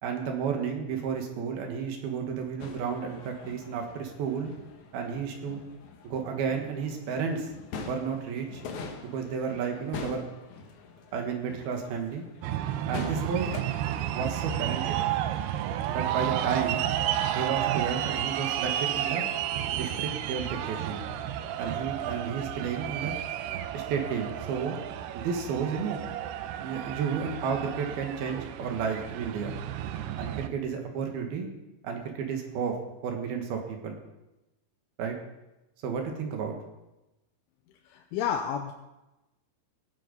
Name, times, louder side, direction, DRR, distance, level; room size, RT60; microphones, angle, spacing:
voice 1, 0.0-4.5 4.9-5.6 6.0-7.5 7.8-8.6 9.1-10.3 11.1-12.2 12.9-13.5 14.1-15.0 15.9-16.9 17.3-19.2 19.7-21.1 21.6-23.2 23.7-24.7 25.1-26.0 26.6-29.6 30.2-31.5 31.8-32.8 33.0-34.0 35.0-35.2 35.8-36.6, right 6 dB, 65° right, 3 dB, 3.0 m, -32 dB
sound 1, 2.6-13.6, left 4 dB, 75° left, 1.7 m, -44 dB
sound 2, 12.4-30.5, right 11 dB, 80° right, 2.3 m, -32 dB
voice 2, 37.8-38.7, left 8 dB, 90° left, 3 dB, 3.2 m, -30 dB
17.5 x 9.1 x 5.3 m, 0.97 s
omnidirectional pair, 5.4 m